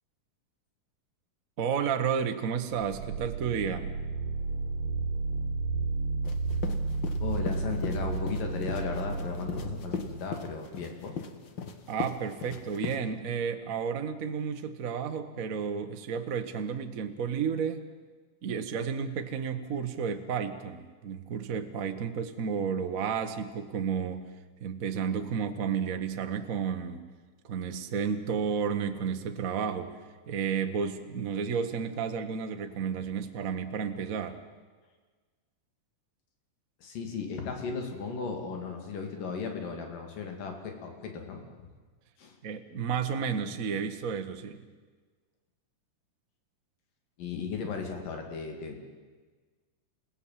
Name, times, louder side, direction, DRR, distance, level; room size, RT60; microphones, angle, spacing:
voice 1, 1.6-3.9 11.9-17.8 18.4-24.2 24.6-27.0 27.4-30.0 30.3-34.4 42.4-44.6, right 6 dB, 85° right, 6 dB, 0.7 m, -32 dB
sound 1, 2.7-10.5, right 3 dB, 65° right, 2.7 m, -32 dB
sound 2, 6.2-13.0, left 5 dB, 50° left, 1.5 m, -38 dB
voice 2, 7.2-11.1 36.8-41.7 42.2-42.4 47.2-48.8, left 5 dB, 85° left, 3 dB, 4.3 m, -36 dB
29.5 x 17.0 x 7.6 m, 1.4 s
omnidirectional pair, 3.8 m